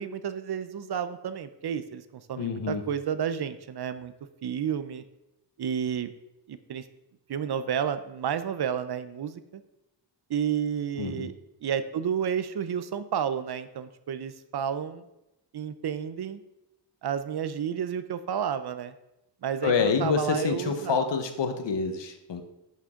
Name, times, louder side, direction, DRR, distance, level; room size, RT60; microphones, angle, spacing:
voice 1, 0.0-4.1 4.4-5.0 5.6-6.1 6.5-6.9 7.3-9.6 10.3-11.3 11.6-15.0 15.5-16.4 17.0-18.9 19.4-21.0, right 8 dB, 60° right, 12 dB, 0.6 m, -31 dB
voice 2, 2.4-2.8 11.0-11.3 19.6-22.4, left 5 dB, 70° left, 7 dB, 1.1 m, -27 dB
11.0 x 6.4 x 3.7 m, 0.90 s
wide cardioid pair, 165°, 45 cm